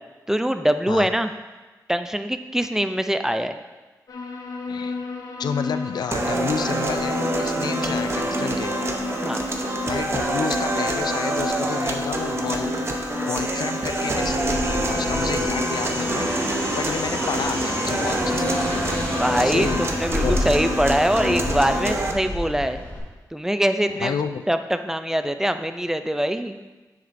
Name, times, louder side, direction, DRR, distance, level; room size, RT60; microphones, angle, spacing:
voice 1, 0.3-1.3 1.9-3.6 9.2-9.4 19.1-22.8 23.3-24.1 24.5-26.6, equal, 5° right, 9 dB, 0.3 m, -23 dB
sound 1, 4.1-22.0, left 4 dB, 60° left, 0.8 m, -32 dB
voice 2, 4.7-5.0 5.4-8.7 9.9-12.9 13.2-16.3 16.7-18.8 19.4-19.9 20.2-20.4 23.9-24.4, left 6 dB, 90° left, 9 dB, 0.4 m, -30 dB
sound 2, 6.1-22.1, right 2 dB, 40° right, 0.8 m, -26 dB
sound 3, 14.1-23.0, left 1 dB, 25° left, 2.0 m, -30 dB
9.5 x 7.0 x 2.6 m, 1.2 s
wide cardioid pair, 140°, 7 cm